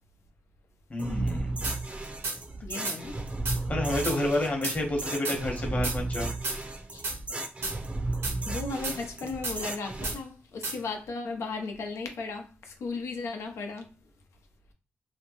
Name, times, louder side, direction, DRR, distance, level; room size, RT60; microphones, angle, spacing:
voice 1, 0.9-1.6 3.7-6.3, left 1 dB, 30° left, 1.0 m, -29 dB
sound 1, 1.0-10.1, right 2 dB, 25° right, 0.6 m, -34 dB
sound 2, 1.6-1.8 2.2-2.4 2.8-3.0 3.5-3.6 4.0-4.2 4.6-4.8 5.2-5.4 5.8-6.0 6.4-6.6 7.0-7.2 7.6-7.8 8.2-8.4 8.8-9.0 9.4-9.6 10.0-10.2 10.6-10.8, right 3 dB, 65° right, 0.9 m, -32 dB
voice 2, 2.6-3.2 6.9-7.0 8.5-13.9, left 4 dB, 80° left, 0.7 m, -36 dB
2.8 x 2.1 x 3.0 m
cardioid pair, 85°, 5 cm